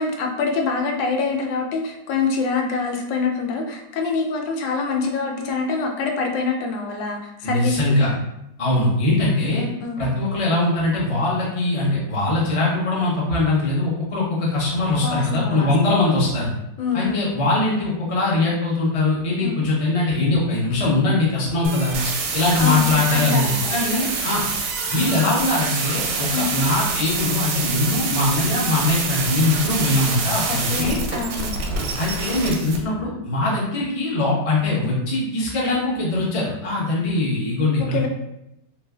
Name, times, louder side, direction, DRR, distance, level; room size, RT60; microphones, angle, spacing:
voice 1, 0.0-7.8 8.7-8.8 9.8-10.0 15.0-15.7 16.8-17.2 19.4-19.6 22.6-24.0 26.3-26.5 30.5-31.6 37.8-38.1, left 4 dB, 85° left, 2 dB, 1.3 m, -25 dB
voice 2, 7.4-8.1 8.6-9.6 10.0-16.5 16.9-24.4 24.9-31.0 31.9-38.1, left 2 dB, 35° left, -5 dB, 0.5 m, -21 dB
sound 1, 21.6-32.8, right 4 dB, 90° right, 1.3 m, -26 dB
3.2 x 3.1 x 2.3 m, 0.84 s
omnidirectional pair, 1.9 m